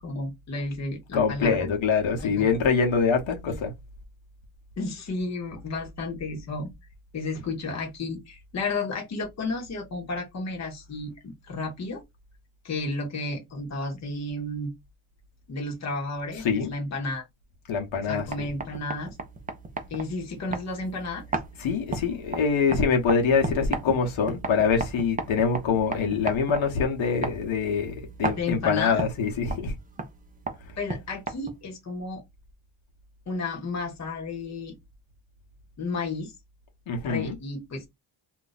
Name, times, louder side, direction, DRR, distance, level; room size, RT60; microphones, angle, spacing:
voice 1, 0.0-1.7 2.2-2.6 3.5-3.6 4.8-6.7 7.1-12.0 12.6-14.7 15.5-17.2 18.0-19.2 19.9-21.2 28.3-29.0 30.8-32.2 33.3-34.8 35.8-36.3 37.0-37.9, left 3 dB, 35° left, 0.9 m, -32 dB
voice 2, 1.1-3.7 16.4-16.7 17.7-18.2 21.6-29.7 36.9-37.3, left 5 dB, 70° left, 1.0 m, -24 dB
sound 1, 18.0-31.8, right 3 dB, 20° right, 0.4 m, -36 dB
2.5 x 2.2 x 3.9 m
wide cardioid pair, 170°, 49 cm